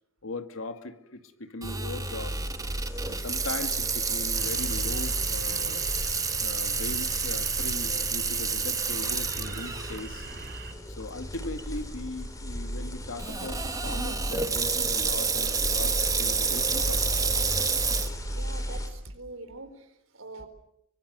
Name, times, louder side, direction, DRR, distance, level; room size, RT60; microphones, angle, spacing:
voice 1, 0.2-2.4 3.0-5.8 6.4-10.3 10.6-17.2, left 2 dB, 85° left, 8 dB, 2.2 m, -39 dB
sound 1, 1.6-18.9, equal, 15° left, 4.1 m, -36 dB
Water tap faucet / Sink (filling or washing), 1.6-10.0 10.5-10.6 11.3-11.6 13.2-18.1, right 5 dB, 15° right, 1.4 m, -29 dB
sound 2, 4.3-10.7, right 3 dB, 55° right, 3.6 m, -42 dB
voice 2, 18.3-20.5, right 2 dB, 85° right, 8 dB, 4.2 m, -44 dB
25.5 x 24.0 x 8.1 m, 0.77 s
head